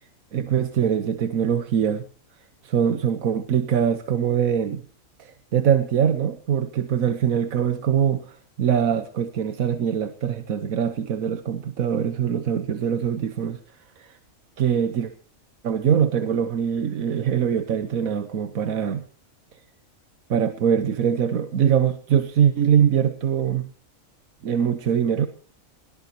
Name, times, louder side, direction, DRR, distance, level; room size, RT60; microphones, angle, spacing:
voice 1, 0.3-2.0 2.6-4.8 5.2-13.6 14.0-14.2 14.6-15.1 15.6-19.0 20.3-23.7 24.4-25.3, right 8 dB, 90° right, 10 dB, 1.5 m, -23 dB
21.0 x 18.5 x 2.9 m, 0.40 s
omnidirectional pair, 1.4 m